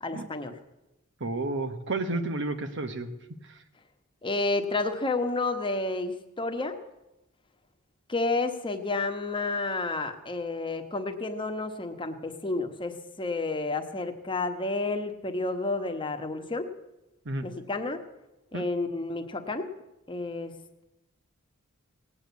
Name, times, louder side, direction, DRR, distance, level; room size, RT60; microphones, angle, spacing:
voice 1, 0.0-0.6 4.2-6.8 8.1-16.7 17.4-18.0 18.5-19.7 20.1-20.5, left 3 dB, 25° left, 6 dB, 1.2 m, -30 dB
voice 2, 1.2-3.1 17.2-17.4 18.5-18.6, right 2 dB, 60° right, 9 dB, 1.2 m, -31 dB
18.0 x 8.6 x 8.3 m, 0.93 s
head